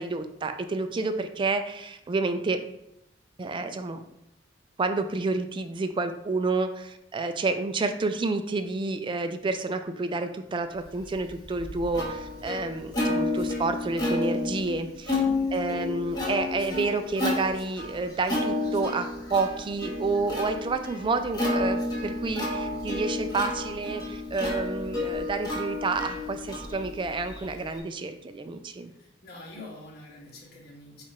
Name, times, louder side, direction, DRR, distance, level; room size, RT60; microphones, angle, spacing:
voice 1, 0.0-2.6 3.4-4.0 4.8-15.2 15.5-28.9, right 3 dB, 25° right, 8 dB, 0.3 m, -29 dB
Plucked string instrument, 11.0-27.8, left 2 dB, 20° left, 1.1 m, -31 dB
voice 2, 15.1-15.4 29.2-31.0, left 2 dB, 55° left, -3 dB, 1.2 m, -44 dB
4.5 x 2.5 x 4.2 m, 0.81 s
head